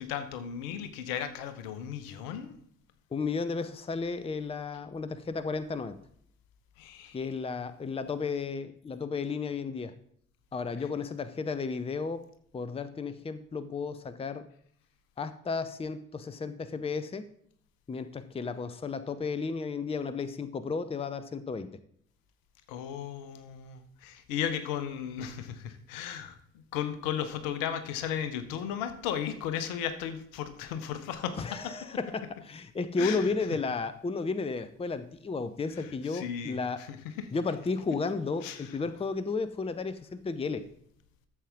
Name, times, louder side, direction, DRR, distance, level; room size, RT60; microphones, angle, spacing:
voice 1, 0.0-2.5 6.8-7.2 22.7-26.4 26.7-31.7 33.0-33.3 35.8-37.3 38.4-38.7, left 9 dB, 65° left, 11 dB, 1.1 m, -35 dB
voice 2, 3.1-6.0 7.1-9.9 10.5-12.3 12.5-14.5 15.2-17.3 17.9-21.7 31.4-36.8 37.3-40.6, left 4 dB, 15° left, 13 dB, 0.7 m, -33 dB
12.5 x 7.4 x 3.6 m, 0.67 s
figure-of-eight pair, 45°, 37 cm